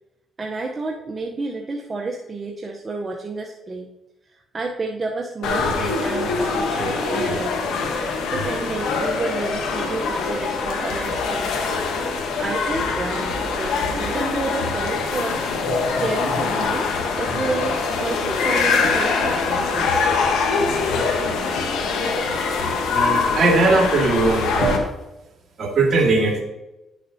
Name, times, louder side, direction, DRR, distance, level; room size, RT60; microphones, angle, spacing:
voice 1, 0.4-3.9 4.3-7.7 8.3-11.8 12.4-15.4 16.0-20.0, right 3 dB, 30° right, 0 dB, 0.8 m, -30 dB
sound 1, 5.4-24.8, left 4 dB, 90° left, 1.2 m, -23 dB
voice 2, 22.9-24.8 25.6-26.4, right 3 dB, 55° right, 1 dB, 1.9 m, -19 dB
10.0 x 6.5 x 2.7 m, 0.97 s
cardioid pair, 90°, 0 cm